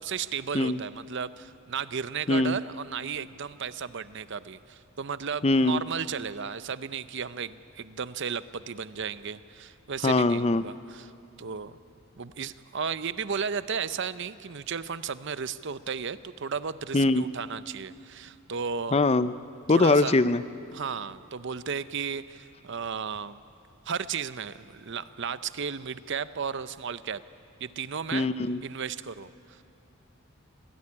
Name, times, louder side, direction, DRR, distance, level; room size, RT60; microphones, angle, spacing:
voice 1, 0.0-11.1 11.4-11.7 12.2-19.0 19.7-20.2 20.7-23.4 23.9-27.2 27.6-28.3 28.6-29.3, right 6 dB, 55° right, 14 dB, 0.7 m, -34 dB
voice 2, 5.4-5.8 10.0-10.6 16.9-17.2 18.9-19.3 19.7-20.4 28.1-28.6, left 2 dB, 30° left, 14 dB, 0.5 m, -22 dB
26.0 x 17.5 x 9.8 m, 2.7 s
head